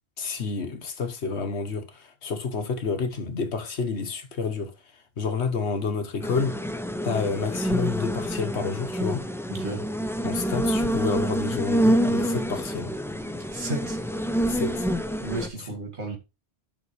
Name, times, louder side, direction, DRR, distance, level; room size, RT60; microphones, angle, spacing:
voice 1, 0.2-4.7 5.2-6.6 7.0-9.2 10.2-12.9 14.5-14.9, left 5 dB, 80° left, 1.5 m, -29 dB
sound 1, 6.2-15.5, equal, 5° left, 0.4 m, -27 dB
voice 2, 9.5-9.9 13.5-14.0 15.2-16.2, right 2 dB, 90° right, 2.4 m, -33 dB
11.0 x 5.9 x 3.2 m
omnidirectional pair, 1.1 m